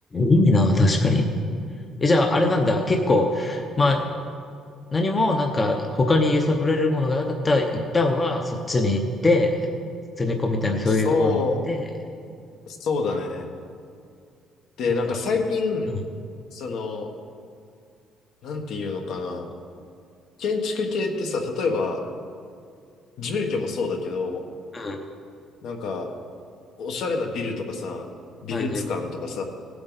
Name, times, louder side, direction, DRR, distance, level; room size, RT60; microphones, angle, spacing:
voice 1, 0.1-1.3 2.0-4.0 4.9-9.5 10.2-11.4 11.7-11.8 15.1-15.2 15.9-16.0 24.7-25.0 28.5-28.8, left 2 dB, 20° left, 2 dB, 0.7 m, -21 dB
voice 2, 10.9-11.6 12.7-13.5 14.8-16.0 16.5-17.1 18.4-19.5 20.4-22.0 23.2-24.4 25.6-26.1 26.8-28.1 28.4-29.4, left 4 dB, 65° left, 3 dB, 1.3 m, -27 dB
17.5 x 7.8 x 4.0 m, 2.3 s
cardioid pair, 160°, 0 cm